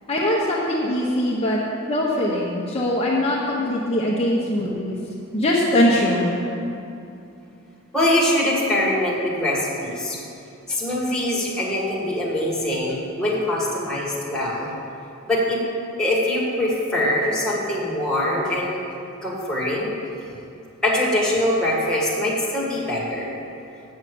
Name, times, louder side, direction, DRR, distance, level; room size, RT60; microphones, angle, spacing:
voice 1, 0.1-1.6 1.9-5.0 5.3-6.3, left 1 dB, 30° left, -5 dB, 1.1 m, -21 dB
voice 2, 7.9-10.2 10.7-14.7 15.3-15.6 16.0-18.8 19.2-19.9 20.8-23.4, left 1 dB, 5° left, -5 dB, 1.7 m, -23 dB
8.3 x 6.5 x 7.7 m, 2.7 s
head